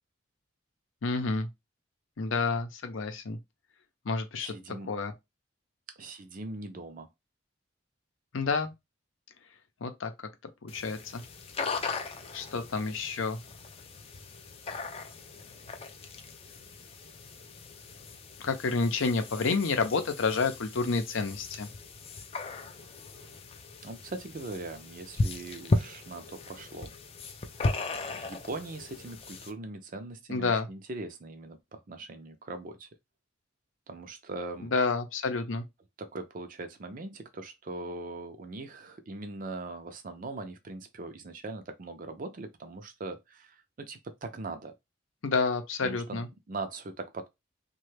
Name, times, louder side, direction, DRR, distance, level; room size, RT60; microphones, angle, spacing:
voice 1, 1.0-1.5 2.2-3.4 4.0-4.5 4.9-5.1 8.3-8.7 9.8-10.1 10.6-11.2 12.3-13.4 18.4-21.7 30.3-30.7 34.7-35.6 45.2-46.3, left 4 dB, 85° left, 0.6 m, -29 dB
voice 2, 4.4-4.9 6.0-7.1 23.8-26.9 28.0-32.9 33.9-34.7 36.0-44.7 45.8-46.2 46.5-47.3, right 2 dB, 45° right, 0.5 m, -40 dB
sound 1, 10.7-29.5, left 2 dB, 30° left, 0.4 m, -37 dB
3.1 x 2.2 x 3.2 m
head